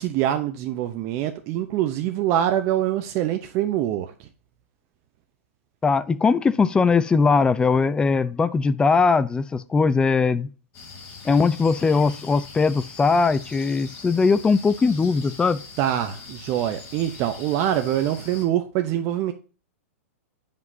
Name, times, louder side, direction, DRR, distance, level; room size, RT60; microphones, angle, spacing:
voice 1, 0.0-4.3 15.8-19.3, right 11 dB, 40° right, 0.7 m, -24 dB
voice 2, 5.8-10.5 11.2-15.6, left 4 dB, 10° left, 0.4 m, -20 dB
sound 1, 10.7-18.4, left 4 dB, 40° left, 3.1 m, -42 dB
9.4 x 5.2 x 2.7 m
hypercardioid pair, 120°, 8 cm